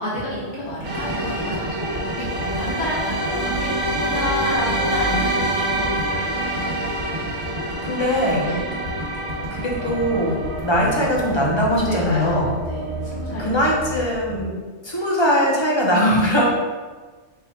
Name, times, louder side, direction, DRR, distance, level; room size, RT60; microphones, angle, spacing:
voice 1, 0.0-6.0 6.4-6.5 8.4-8.6 11.8-13.8, equal, 75° left, -8 dB, 1.7 m, -29 dB
sound 1, 0.8-14.4, right 1 dB, 40° right, 0.5 m, -27 dB
sound 2, 0.8-13.0, left 1 dB, 85° right, 1.3 m, -34 dB
voice 2, 7.8-8.4 9.5-12.5 13.4-14.5 14.8-16.5, equal, 25° left, -4 dB, 0.8 m, -21 dB
4.6 x 2.4 x 4.3 m, 1.3 s
omnidirectional pair, 1.2 m